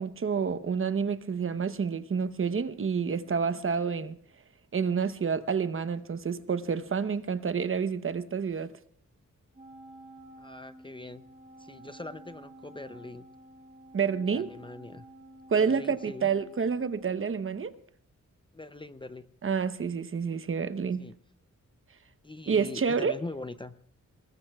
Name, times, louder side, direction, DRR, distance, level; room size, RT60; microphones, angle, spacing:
voice 1, 0.0-4.2 4.7-8.7 13.9-14.5 15.5-17.7 19.4-21.0 22.5-23.1, right 6 dB, 40° right, 0.9 m, -29 dB
Wind instrument woodwind instrument, 9.5-17.2, right 1 dB, 25° right, 5.3 m, -51 dB
voice 2, 10.4-11.3 11.6-13.3 14.2-15.1 15.6-16.3 18.5-19.3 21.0-21.2 22.2-23.8, left 2 dB, 15° left, 0.5 m, -42 dB
25.0 x 20.5 x 2.3 m
wide cardioid pair, 115°, 31 cm